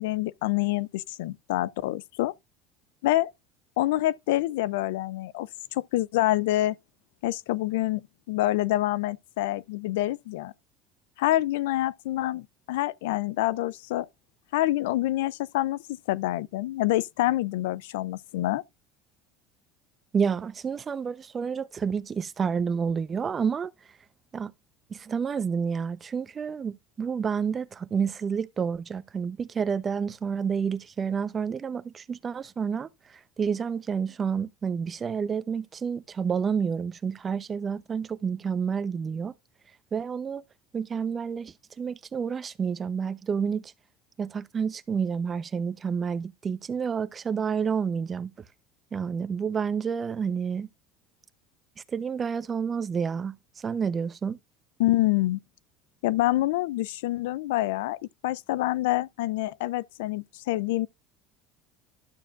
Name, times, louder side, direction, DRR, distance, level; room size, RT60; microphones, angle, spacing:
voice 1, 0.0-2.3 3.0-3.3 3.8-6.8 7.2-10.5 11.2-14.1 14.5-18.6 54.8-55.4 56.0-60.9, left 16 dB, 90° left, 0.5 m, -27 dB
voice 2, 20.1-23.7 24.3-24.5 24.9-39.3 39.9-40.4 40.7-43.7 44.2-48.3 48.9-50.7 51.9-54.4, right 6 dB, 30° right, 0.8 m, -29 dB
12.5 x 6.7 x 2.5 m
supercardioid pair, 110°, 0 cm